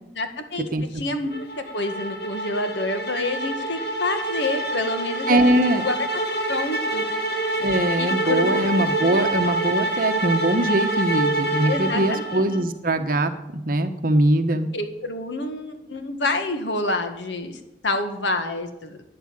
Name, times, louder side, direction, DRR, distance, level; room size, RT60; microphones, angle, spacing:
voice 1, 0.2-6.1 6.5-7.0 7.5-7.6 8.0-8.6 9.1-9.2 11.6-12.6 14.5-19.0, left 2 dB, 80° left, 7 dB, 1.8 m, -28 dB
sound 1, 1.3-12.6, right 2 dB, 60° left, 2.3 m, -26 dB
voice 2, 5.3-5.8 7.6-14.7, right 1 dB, 50° right, 8 dB, 1.2 m, -22 dB
11.5 x 9.7 x 8.9 m, 0.89 s
head